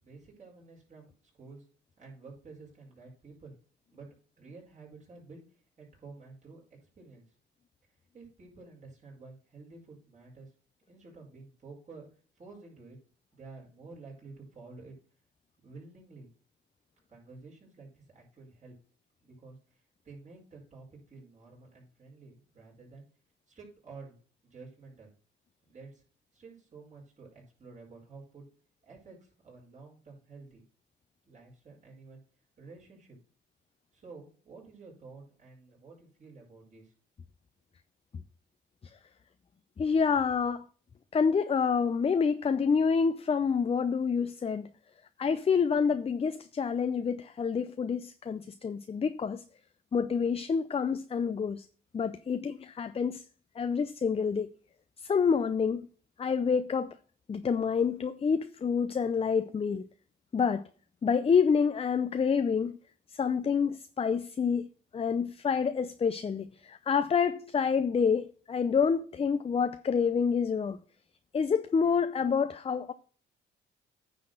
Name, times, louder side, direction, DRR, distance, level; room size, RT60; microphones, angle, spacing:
voice 1, 0.0-1.7 2.0-3.5 3.9-4.1 4.4-7.2 8.1-10.5 10.9-12.1 12.3-13.0 13.3-14.9 15.6-16.3 17.1-18.8 19.2-23.0 23.5-24.1 24.4-25.1 25.7-26.0 26.3-28.5 28.8-30.6 31.2-32.2 32.6-33.2 33.9-36.9, right 3 dB, 35° right, 5.1 m, -51 dB
voice 2, 39.8-40.6 41.1-44.7 45.2-49.4 49.9-51.7 51.9-53.2 53.6-54.5 55.0-55.9 56.2-57.0 57.3-59.9 60.3-60.6 61.0-62.8 63.1-64.7 64.9-70.8 71.3-72.9, left 6 dB, 30° left, 0.6 m, -28 dB
9.4 x 4.2 x 6.4 m
cardioid pair, 90°, 20 cm